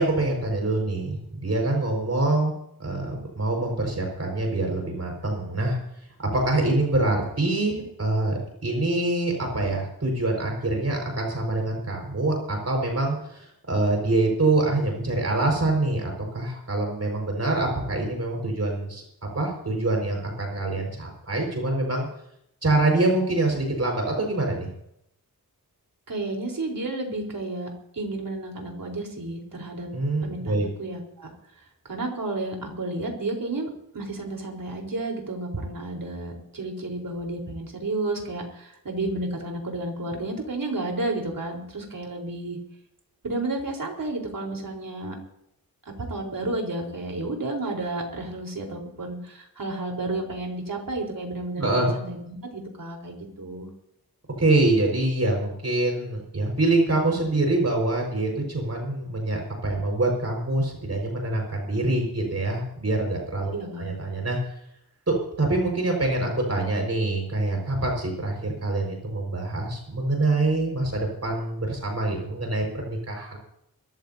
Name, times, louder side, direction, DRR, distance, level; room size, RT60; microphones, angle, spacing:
voice 1, 0.0-2.5 2.8-5.8 6.2-19.0 19.3-22.1 22.6-24.7 29.9-30.7 51.6-51.9 54.4-64.4 65.1-73.4, right 2 dB, 45° right, 1 dB, 5.4 m, -25 dB
voice 2, 26.1-29.9 30.2-31.3 31.8-42.6 43.2-45.2 46.0-53.7 63.5-63.9, right 2 dB, 65° right, 0 dB, 4.3 m, -32 dB
23.5 x 14.5 x 2.8 m, 0.76 s
wide cardioid pair, 110°, 36 cm